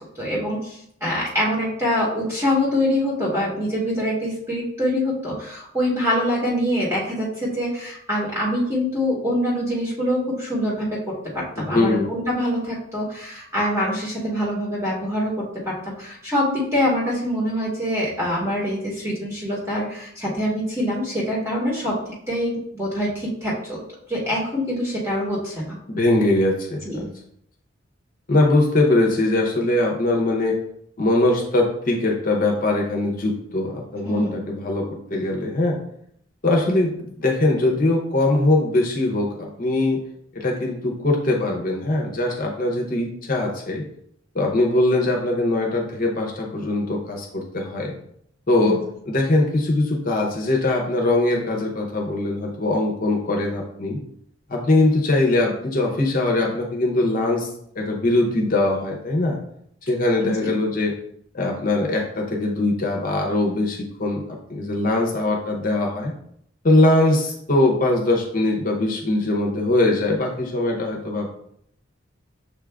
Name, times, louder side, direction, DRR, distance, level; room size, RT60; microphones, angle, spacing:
voice 1, 0.2-10.9 11.3-22.0 22.3-23.8 24.1-25.8 26.8-27.1 34.0-34.5 48.6-48.8 60.2-60.5, equal, 15° right, -5 dB, 0.9 m, -24 dB
voice 2, 11.6-12.1 25.9-27.1 28.3-30.6 31.0-35.8 36.4-40.0 40.3-43.8 44.3-47.9 48.5-48.8 49.1-54.0 54.5-57.5 57.8-59.4 59.8-60.9 61.3-66.1 66.6-71.3, left 2 dB, 45° left, 0 dB, 0.7 m, -21 dB
6.6 x 2.4 x 3.3 m, 0.70 s
head